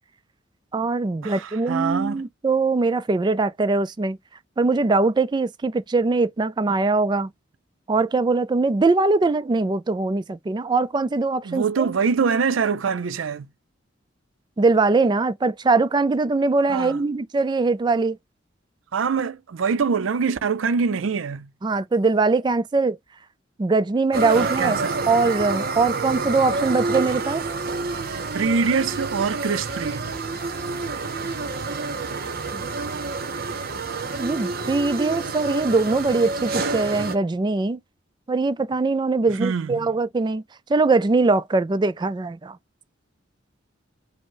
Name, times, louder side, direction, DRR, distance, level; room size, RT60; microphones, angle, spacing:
voice 1, 0.7-4.2 4.6-7.3 7.9-11.9 14.6-18.2 21.6-23.0 23.6-24.8 25.1-27.4 32.5-32.6 34.2-37.8 38.3-40.4 40.7-42.6, right 3 dB, 25° right, 0.3 m, -21 dB
voice 2, 1.2-2.2 11.4-13.5 16.7-17.0 18.9-21.5 24.3-25.1 28.3-30.1 39.3-39.9, right 5 dB, 80° right, 0.5 m, -24 dB
sound 1, 24.1-37.2, right 3 dB, 50° right, 0.8 m, -28 dB
5.1 x 2.1 x 3.8 m
head